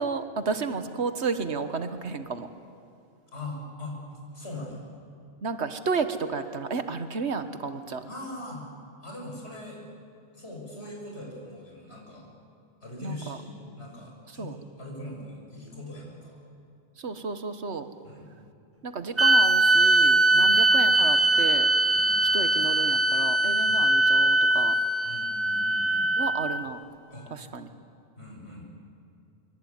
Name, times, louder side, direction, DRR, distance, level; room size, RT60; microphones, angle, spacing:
voice 1, 0.0-2.5 5.4-8.0 13.0-13.4 14.4-14.5 17.0-17.9 18.8-21.7 22.3-24.7 26.2-26.8 27.3-27.7, right 4 dB, 85° right, 9 dB, 1.7 m, -32 dB
voice 2, 3.3-4.0 4.3-4.8 8.1-8.6 9.0-9.8 10.3-12.3 12.8-16.4 18.0-18.3 20.3-20.5 21.9-22.2 23.7-23.9 25.0-26.1 27.1-27.3 28.2-28.7, left 1 dB, 80° left, -1 dB, 6.8 m, -41 dB
sound 1, 19.2-26.7, right 1 dB, 15° right, 0.9 m, -21 dB
26.5 x 23.0 x 9.4 m, 2.6 s
omnidirectional pair, 1.1 m